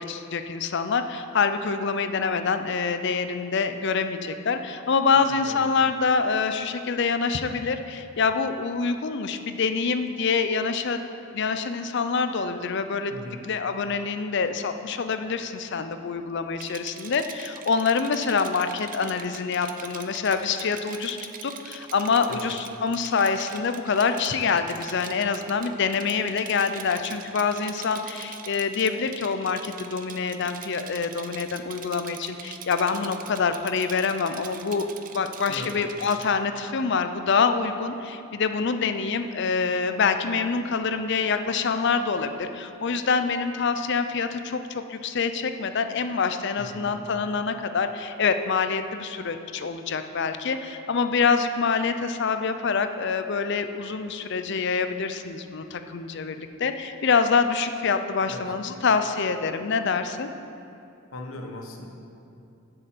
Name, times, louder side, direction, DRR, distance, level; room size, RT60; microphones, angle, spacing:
voice 1, 0.0-11.1 11.3-13.1 13.5-21.2 21.4-34.9 35.1-60.3, left 5 dB, 55° left, 9 dB, 0.5 m, -26 dB
voice 2, 5.1-5.6 13.1-13.4 22.3-22.5 35.5-35.8 46.6-46.9 58.3-58.5 61.1-61.9, left 2 dB, 80° left, 2 dB, 1.2 m, -39 dB
Rattle, 16.6-36.3, right 8 dB, 40° right, 0.5 m, -43 dB
7.9 x 6.7 x 7.6 m, 2.7 s
head